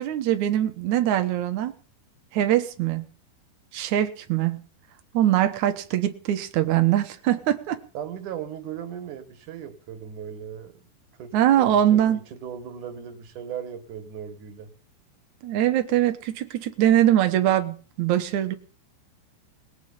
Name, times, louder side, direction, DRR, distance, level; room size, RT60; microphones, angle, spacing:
voice 1, 0.0-1.7 2.3-3.1 3.7-4.6 5.1-7.8 11.3-12.2 15.4-18.5, right 12 dB, 90° right, 8 dB, 1.6 m, -22 dB
voice 2, 7.9-10.8 11.2-14.7, right 8 dB, 55° right, 9 dB, 2.8 m, -37 dB
19.0 x 7.9 x 8.7 m, 0.39 s
omnidirectional pair, 5.2 m